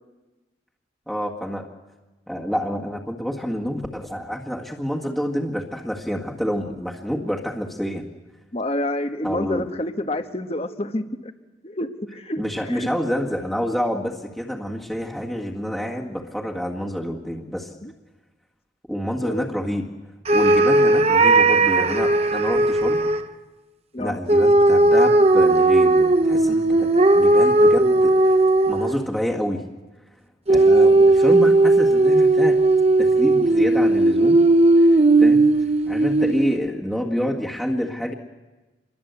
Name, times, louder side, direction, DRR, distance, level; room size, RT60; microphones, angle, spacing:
voice 1, 1.1-1.7 2.3-8.0 9.2-9.7 12.4-17.7 18.9-19.9 20.3-23.0 24.0-28.4 28.7-29.7 30.5-32.6 33.0-34.4 34.8-38.1, equal, ahead, -2 dB, 1.8 m, -28 dB
voice 2, 8.5-11.3 11.6-12.9 17.8-17.9 19.2-19.5 23.9-24.2, left 1 dB, 35° left, 8 dB, 1.4 m, -28 dB
sound 1, 20.3-23.2 24.3-29.1 30.5-36.6, right 2 dB, 35° right, 0.9 m, -16 dB
27.5 x 22.5 x 8.2 m, 1.2 s
head